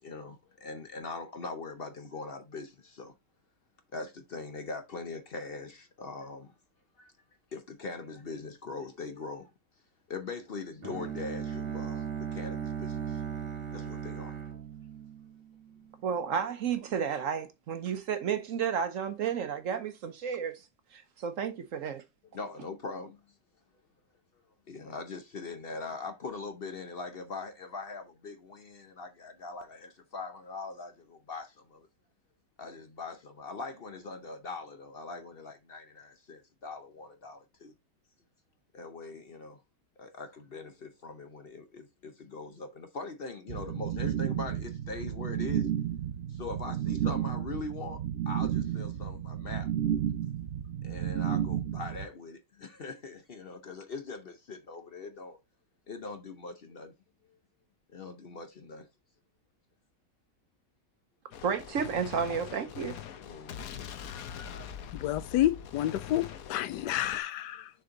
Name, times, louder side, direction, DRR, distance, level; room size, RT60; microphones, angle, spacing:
voice 1, 0.0-3.1 3.9-6.5 7.0-7.1 7.5-9.5 10.1-13.2 13.7-14.4 22.3-23.2 24.7-31.9 32.6-37.7 38.7-39.6 40.0-45.7 46.3-49.7 50.8-55.4 55.9-56.9 57.3-57.4 57.9-58.9 63.3-63.9, left 3 dB, 50° left, 0.7 m, -41 dB
Bowed string instrument, 10.8-15.8, right 8 dB, 35° right, 1.4 m, -37 dB
voice 2, 16.0-20.7 20.9-22.0 61.4-63.0, right 7 dB, 60° right, 1.0 m, -32 dB
sound 1, 43.5-52.0, right 10 dB, 85° right, 0.6 m, -32 dB
Gunshot gunfire, 61.3-67.2, left 8 dB, 65° left, 1.1 m, -43 dB
voice 3, 64.9-67.7, left 13 dB, 90° left, 1.2 m, -29 dB
6.7 x 4.4 x 3.7 m
omnidirectional pair, 1.8 m